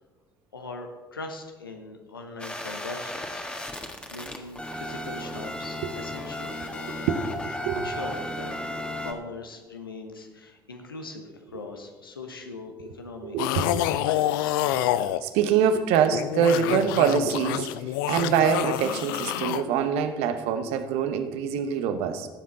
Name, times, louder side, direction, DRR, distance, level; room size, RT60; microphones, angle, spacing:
voice 1, 0.5-3.5 3.8-7.1 7.7-8.5 9.0-13.4 13.9-14.6, left 3 dB, 90° left, 4 dB, 1.1 m, -40 dB
sound 1, 2.4-9.1, left 1 dB, 10° left, 1.6 m, -34 dB
voice 2, 6.8-7.9 13.2-13.9 14.7-14.9 15.2-17.7 18.1-22.3, right 7 dB, 65° right, 8 dB, 1.0 m, -25 dB
sound 2, 13.4-15.2 15.9-19.6, left 14 dB, 70° left, 0.4 m, -27 dB
16.0 x 7.5 x 4.1 m, 1.2 s
figure-of-eight pair, 60°, 11 cm